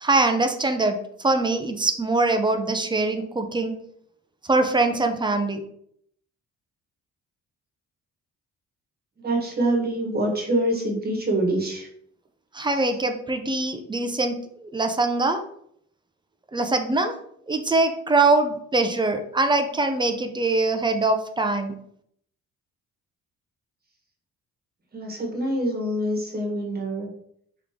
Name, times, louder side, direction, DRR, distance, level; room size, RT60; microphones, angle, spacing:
voice 1, 0.0-1.0 1.2-3.7 4.5-5.6 12.6-14.4 14.7-15.4 16.5-17.1 17.5-21.7, right 2 dB, 15° right, 6 dB, 0.5 m, -23 dB
voice 2, 9.2-11.9 12.7-13.0 24.9-27.1, right 1 dB, 30° right, 0 dB, 1.3 m, -25 dB
3.7 x 3.1 x 3.6 m, 0.69 s
cardioid pair, 90°, 30 cm